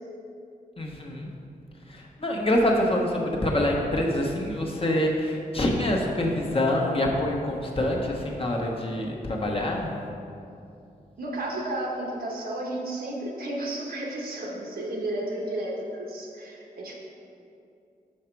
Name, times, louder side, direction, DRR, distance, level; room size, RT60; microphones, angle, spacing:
voice 1, 0.8-1.3 1.9-9.9, left 1 dB, 40° left, -1 dB, 1.0 m, -26 dB
voice 2, 11.2-16.9, right 1 dB, 80° right, -2 dB, 1.2 m, -32 dB
6.4 x 4.9 x 4.6 m, 2.6 s
wide cardioid pair, 85°, 15 cm